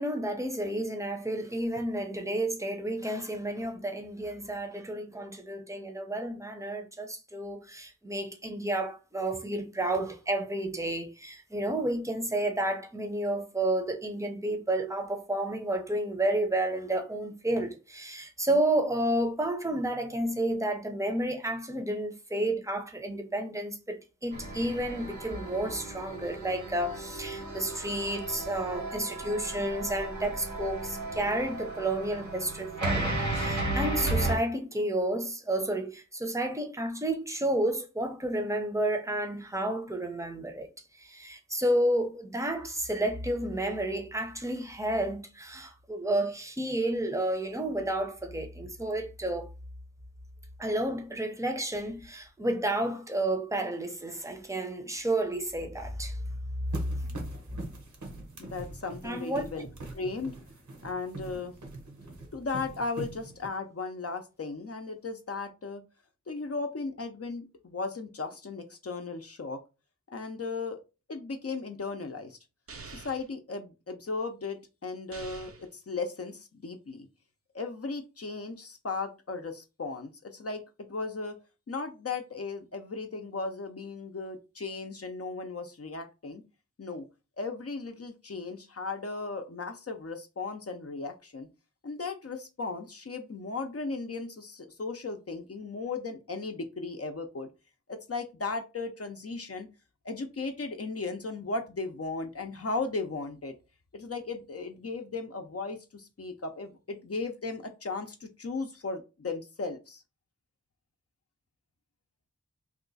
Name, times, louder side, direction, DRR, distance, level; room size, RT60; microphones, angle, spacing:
voice 1, 0.0-40.7 41.0-49.5 50.6-56.2 56.9-57.1 59.0-59.4, right 1 dB, 10° right, 0.7 m, -31 dB
sound 1, 24.3-34.4, right 2 dB, 90° right, 1.3 m, -34 dB
sound 2, 56.7-63.5, right 2 dB, 75° right, 0.9 m, -43 dB
voice 2, 58.4-60.4 60.8-61.5 62.3-65.8 66.3-69.6 70.1-70.8 71.1-72.4 72.9-77.1 77.5-81.4 81.7-86.4 86.8-87.1 87.4-91.5 91.8-97.5 97.9-99.7 100.0-103.5 103.9-110.0, left 3 dB, 50° left, 0.6 m, -36 dB
sound 3, 72.7-73.3 75.1-75.7, right 4 dB, 50° right, 0.5 m, -45 dB
2.8 x 2.3 x 3.9 m
wide cardioid pair, 60°, 30 cm